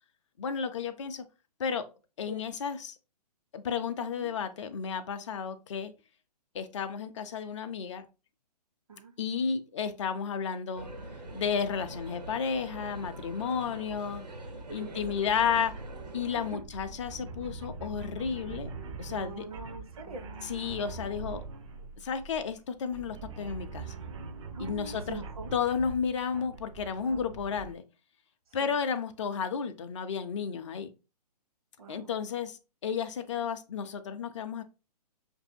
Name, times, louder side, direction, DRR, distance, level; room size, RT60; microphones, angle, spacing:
voice 1, 0.4-1.2 1.6-1.9 2.2-2.9 3.5-5.9 6.5-8.0 9.2-10.9 11.3-14.2 14.7-15.7 16.1-18.7 19.0-19.4 20.4-21.4 22.0-24.0 24.6-25.2 25.5-27.8 28.5-30.9 31.9-34.6, left 6 dB, 45° left, 0.5 m, -32 dB
voice 2, 4.0-4.3 8.9-9.1 13.7-13.8 14.8-15.4 15.9-16.6 19.1-20.3 24.5-25.6 27.0-27.2 28.6-28.8 31.8-32.1, right 3 dB, 60° right, 1.0 m, -43 dB
sound 1, 10.7-16.5, right 1 dB, 80° right, 1.3 m, -44 dB
sound 2, 14.8-27.7, right 4 dB, 45° right, 0.6 m, -43 dB
6.1 x 2.7 x 2.6 m
figure-of-eight pair, 125°, 21 cm